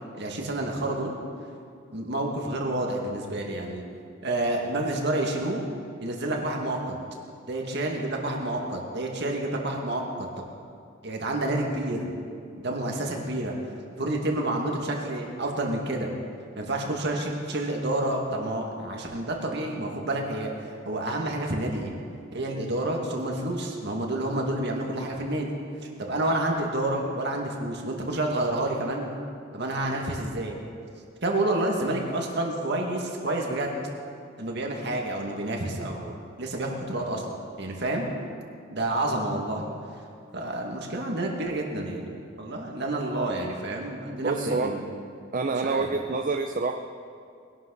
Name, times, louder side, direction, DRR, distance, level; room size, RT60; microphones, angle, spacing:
voice 1, 0.1-1.1 1.9-3.8 4.2-5.6 6.0-6.9 7.5-10.3 11.0-12.1 12.6-13.6 14.0-16.1 16.6-20.5 20.9-21.9 22.3-25.5 26.0-29.1 29.5-30.6 31.2-33.7 34.4-36.1 36.4-37.2 37.6-38.1 38.7-39.7 40.3-42.1 42.4-44.8 45.6-45.9, right 1 dB, 60° right, 0 dB, 2.1 m, -29 dB
voice 2, 44.2-44.7 45.3-46.7, right 4 dB, 40° right, 5 dB, 0.5 m, -27 dB
21.0 x 11.5 x 4.0 m, 2.3 s
head